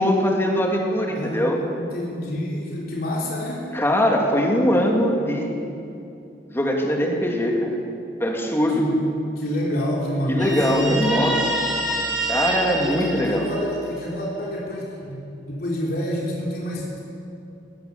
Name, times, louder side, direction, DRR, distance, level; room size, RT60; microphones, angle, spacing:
voice 1, 0.0-1.6 3.7-5.5 6.5-7.8 8.2-8.8 10.3-11.3 12.3-13.5, equal, 15° left, 0 dB, 2.9 m, -21 dB
voice 2, 1.1-3.7 8.7-9.0 9.3-11.4 12.9-17.0, equal, 60° left, -3 dB, 3.6 m, -28 dB
Guitar, 10.4-14.0, right 1 dB, ahead, 4.6 m, -27 dB
20.5 x 18.0 x 7.1 m, 2.6 s
head